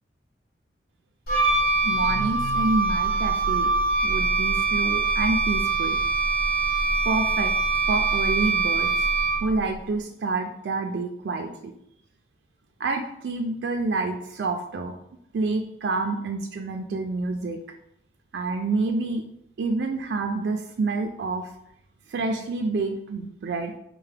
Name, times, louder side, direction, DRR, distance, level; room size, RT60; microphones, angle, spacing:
Wind instrument woodwind instrument, 1.3-9.6, right 3 dB, 55° left, 1.0 m, -23 dB
voice 1, 1.8-3.7 4.0-6.0 7.1-7.5 7.9-9.1 9.4-11.7 12.8-14.9 15.3-17.6 18.3-19.2 19.6-21.5 22.1-23.7, right 3 dB, 75° right, 4 dB, 0.4 m, -28 dB
5.5 x 2.1 x 3.3 m, 0.76 s
head